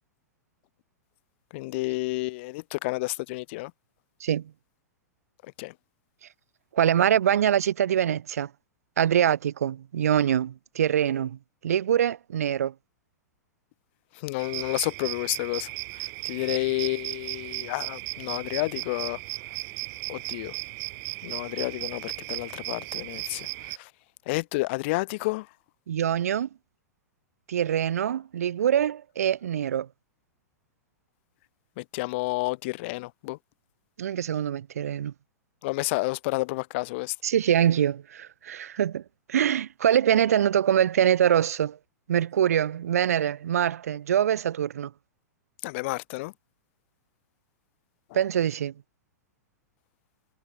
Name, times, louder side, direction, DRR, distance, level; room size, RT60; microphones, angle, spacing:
voice 1, 1.5-3.7 5.6-5.7 14.2-15.7 16.2-19.2 20.1-20.5 21.2-23.5 23.8-23.9 24.3-25.5 31.8-33.4 35.6-37.1 45.6-46.3, left 23 dB, 45° left, 1.2 m, -30 dB
voice 2, 6.7-8.5 9.0-12.7 25.9-26.5 27.5-29.9 34.0-35.1 37.2-39.0 39.3-41.8 42.1-44.9 48.1-48.7, right 9 dB, 60° right, 0.5 m, -24 dB
sound 1, 14.4-23.8, right 27 dB, 35° right, 1.1 m, -36 dB
figure-of-eight pair, 105°, 9 cm